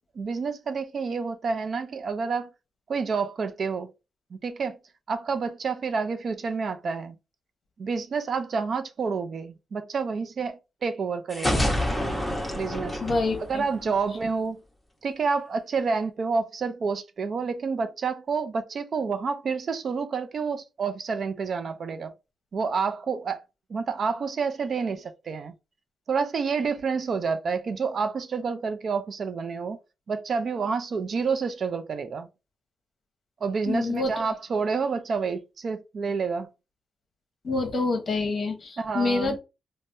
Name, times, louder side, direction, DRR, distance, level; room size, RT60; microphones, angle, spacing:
voice 1, 0.2-2.5 2.9-3.9 4.3-4.8 5.1-7.1 7.8-11.7 12.5-13.0 13.5-14.6 15.0-22.1 22.5-23.4 23.7-25.5 26.1-29.8 30.1-32.3 33.4-36.5 38.8-39.4, right 5 dB, 50° right, 0.4 m, -29 dB
sound 1, 11.3-14.2, left 1 dB, 5° left, 0.9 m, -28 dB
voice 2, 13.0-13.6 33.7-34.1 37.4-39.4, left 3 dB, 40° left, 0.8 m, -27 dB
3.4 x 2.0 x 2.6 m
cardioid pair, 120°, 0 cm